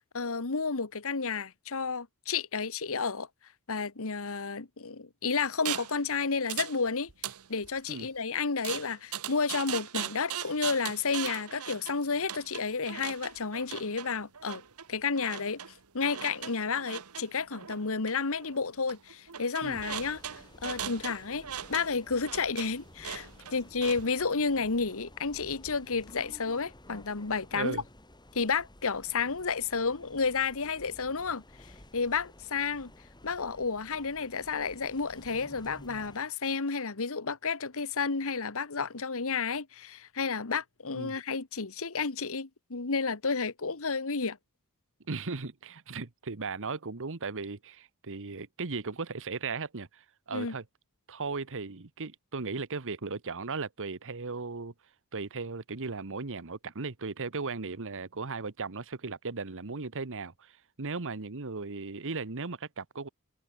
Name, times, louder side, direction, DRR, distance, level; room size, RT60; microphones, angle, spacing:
voice 1, 0.1-3.3 3.7-7.1 7.5-14.6 14.9-15.6 15.9-20.2 20.6-27.8 28.3-31.4 31.9-32.9 33.2-44.4 50.3-50.5, left 5 dB, 65° left, 1.4 m, -31 dB
sound 1, 5.7-6.0 6.5-6.8 7.1-7.9 8.6-24.3, right 10 dB, 85° right, 1.5 m, -39 dB
sound 2, 19.7-36.2, left 1 dB, 20° left, 5.8 m, -53 dB
voice 2, 27.5-27.8 40.9-41.1 45.1-50.6 51.1-54.7 55.1-63.1, right 4 dB, 60° right, 1.2 m, -37 dB
head